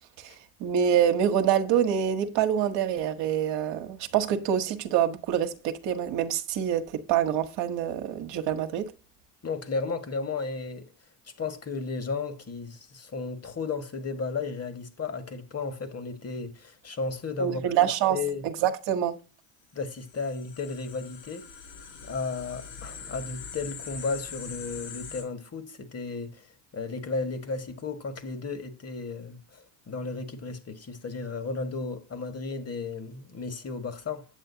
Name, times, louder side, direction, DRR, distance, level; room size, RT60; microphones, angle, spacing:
voice 1, 0.6-8.9 17.4-18.2 18.4-19.2, right 9 dB, 65° right, 1.2 m, -26 dB
voice 2, 9.4-10.9 11.4-17.6 18.1-18.5 19.7-21.5 22.0-26.5 26.7-34.3, left 4 dB, 30° left, 1.7 m, -34 dB
sound 1, 19.9-25.2, left 6 dB, 70° left, 5.2 m, -42 dB
8.9 x 7.6 x 2.8 m
hypercardioid pair, 65°, 47 cm